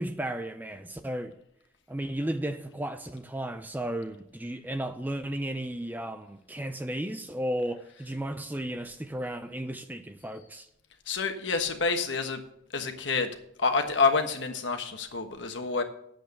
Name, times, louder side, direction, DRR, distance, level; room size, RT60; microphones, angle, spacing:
voice 1, 0.0-1.3 1.9-10.7, right 1 dB, 10° right, 0.4 m, -34 dB
voice 2, 11.1-12.4 12.7-13.3 13.6-15.8, left 4 dB, 65° left, 1.3 m, -28 dB
9.1 x 7.8 x 6.7 m
head